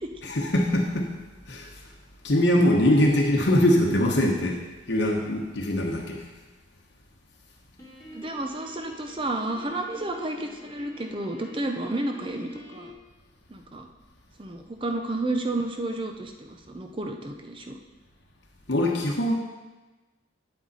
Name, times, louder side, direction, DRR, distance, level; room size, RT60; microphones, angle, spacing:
voice 1, 0.2-1.1 1.5-1.7 2.2-4.6 4.9-6.3 18.7-19.3, left 1 dB, 60° left, -1 dB, 1.1 m, -22 dB
Piano, 7.8-12.9, left 1 dB, 15° left, 1.5 m, -45 dB
voice 2, 8.1-12.9 13.5-13.9 14.4-17.8, right 2 dB, 25° right, 4 dB, 0.7 m, -31 dB
9.1 x 7.8 x 4.1 m, 1.2 s
head